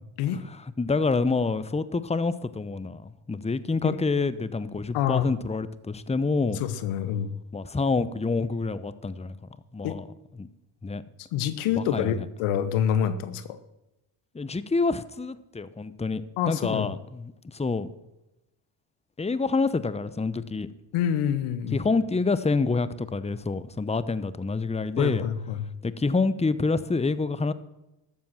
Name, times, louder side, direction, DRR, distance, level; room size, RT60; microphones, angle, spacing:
voice 1, 0.2-6.6 7.5-9.4 9.7-10.0 10.4-10.5 10.8-11.0 11.7-12.3 14.3-17.9 19.2-20.7 21.7-25.3 25.8-27.5, left 3 dB, 15° left, 15 dB, 0.8 m, -27 dB
voice 2, 4.9-5.3 6.6-7.3 9.8-10.0 11.3-13.6 16.4-16.9 20.9-21.8 25.0-25.6, left 9 dB, 90° left, 13 dB, 1.1 m, -27 dB
13.0 x 7.6 x 7.4 m, 0.95 s
supercardioid pair, 60°, 49 cm